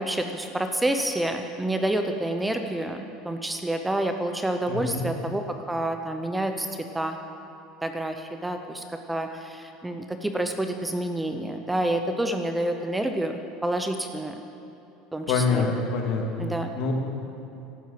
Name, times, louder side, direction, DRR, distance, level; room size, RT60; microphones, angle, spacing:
voice 1, 0.0-6.7 6.9-7.2 7.8-13.3 13.6-14.4 15.1-15.7 16.4-16.7, right 1 dB, 5° right, 6 dB, 0.6 m, -28 dB
voice 2, 4.7-5.1 15.3-16.5 16.7-16.9, left 4 dB, 55° left, 1 dB, 2.4 m, -26 dB
15.0 x 12.5 x 5.8 m, 2.8 s
cardioid pair, 150°, 0 cm